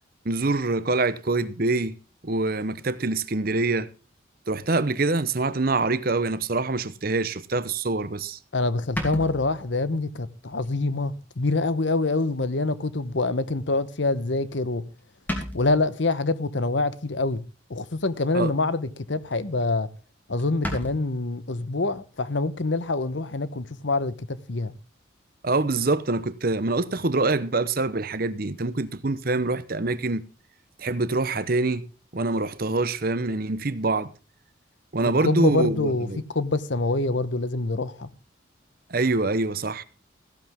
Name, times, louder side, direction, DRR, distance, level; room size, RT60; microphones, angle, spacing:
voice 1, 0.2-2.0 2.2-3.9 4.5-8.4 18.3-18.5 25.4-30.2 30.8-31.9 32.1-34.1 34.9-36.2 38.9-39.8, right 3 dB, 45° right, 0.8 m, -25 dB
voice 2, 8.5-14.8 15.5-17.4 17.7-19.9 20.3-24.7 35.2-36.1 36.3-38.1, left 3 dB, 65° left, 1.0 m, -25 dB
sound 1, 8.9-9.9 10.5-10.8 11.2-11.3 12.6-12.7 14.4-14.7 15.0-15.1 15.3-15.9 17.8-18.3 18.7-18.9 19.3-19.4 19.6-19.7 20.0-20.1 20.4-20.9, equal, 10° left, 2.9 m, -34 dB
15.5 x 11.5 x 3.6 m
head